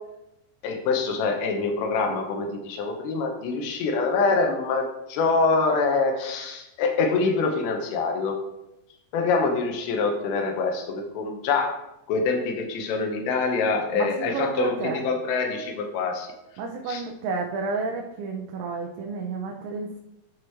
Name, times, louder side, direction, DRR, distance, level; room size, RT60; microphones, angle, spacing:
voice 1, 0.6-8.4 9.1-11.8 12.1-16.3 16.9-17.0, left 4 dB, 85° left, 3 dB, 3.1 m, -25 dB
voice 2, 14.0-15.0 16.6-20.0, right 4 dB, 85° right, 1 dB, 2.9 m, -31 dB
11.0 x 4.9 x 3.0 m, 0.89 s
omnidirectional pair, 5.0 m